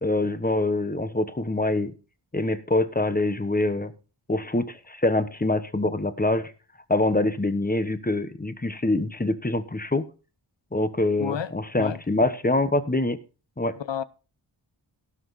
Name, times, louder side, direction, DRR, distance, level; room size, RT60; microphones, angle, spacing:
voice 1, 0.0-1.9 2.3-3.9 4.3-6.5 6.9-10.1 10.7-13.2 13.6-13.7, left 2 dB, 20° left, 1.1 m, -25 dB
voice 2, 11.2-12.0 13.7-14.0, left 8 dB, 80° left, 0.8 m, -31 dB
17.5 x 6.2 x 4.1 m
wide cardioid pair, 80°, 43 cm